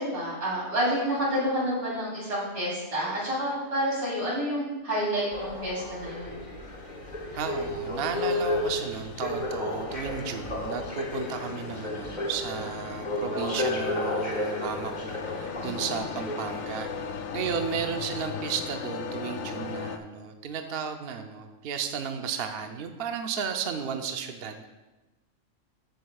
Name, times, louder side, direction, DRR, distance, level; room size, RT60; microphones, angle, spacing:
voice 1, 0.0-6.4 15.6-15.9, equal, 80° right, -6 dB, 3.9 m, -29 dB
sound 1, 5.3-16.9 17.6-17.7, left 1 dB, 35° left, 1.5 m, -33 dB
sound 2, 5.9-20.0, left 6 dB, 75° left, 1.0 m, -39 dB
voice 2, 7.4-24.7, right 7 dB, 55° right, 6 dB, 0.7 m, -34 dB
14.0 x 7.9 x 2.3 m, 1.1 s
omnidirectional pair, 1.5 m